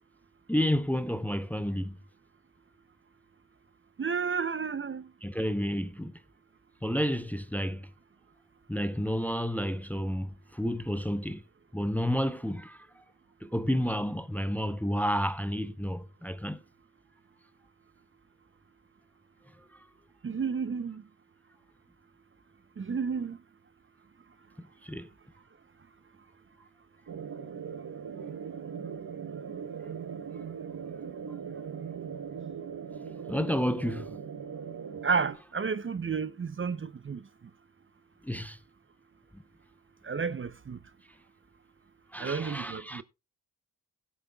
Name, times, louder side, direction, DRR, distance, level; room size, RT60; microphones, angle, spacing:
voice 1, 0.5-2.0 5.2-6.2 6.8-7.9 8.7-11.4 11.7-13.0 13.4-16.6 24.6-25.1 33.3-34.1 38.2-38.6 42.1-43.0, equal, 5° left, 0.6 m, -31 dB
voice 2, 4.0-5.0 20.2-21.0 22.8-23.4 35.0-37.2 40.0-40.8 42.2-43.0, right 5 dB, 30° right, 0.6 m, -31 dB
sound 1, 27.1-35.4, right 7 dB, 50° right, 1.1 m, -40 dB
16.5 x 8.5 x 2.3 m
cardioid pair, 50°, 40 cm